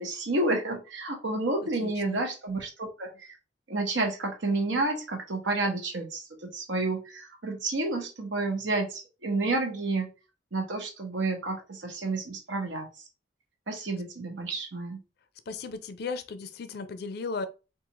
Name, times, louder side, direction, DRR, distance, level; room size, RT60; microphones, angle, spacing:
voice 1, 0.0-3.3 3.7-10.1 10.5-12.9 13.7-15.0, right 2 dB, 70° right, 0.9 m, -30 dB
voice 2, 1.8-2.2 15.5-17.5, left 4 dB, 55° left, 0.4 m, -36 dB
3.8 x 2.4 x 2.9 m
head